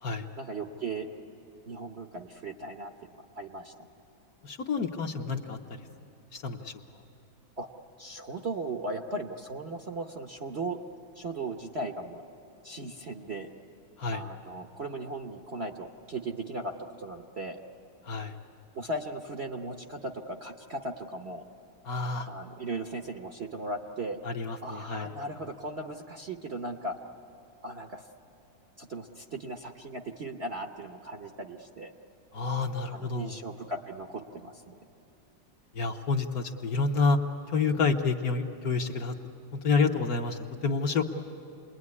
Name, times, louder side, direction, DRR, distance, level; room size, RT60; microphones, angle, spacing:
voice 1, 0.4-1.1 1.7-2.9 3.4-3.7 7.6-7.7 8.0-10.8 11.2-12.2 12.6-13.5 14.1-16.7 17.0-17.6 18.7-21.4 22.3-24.2 24.6-26.9 27.6-28.1 28.8-31.9 32.8-34.7, right 2 dB, 45° right, 4 dB, 0.9 m, -37 dB
voice 2, 4.4-5.6 6.3-6.7 14.0-14.2 18.1-18.3 21.8-22.3 24.2-25.1 32.3-33.3 35.7-37.2 37.5-39.1 39.5-41.0, left 4 dB, 55° left, 4 dB, 1.3 m, -28 dB
28.5 x 21.5 x 9.6 m, 2.9 s
omnidirectional pair, 2.1 m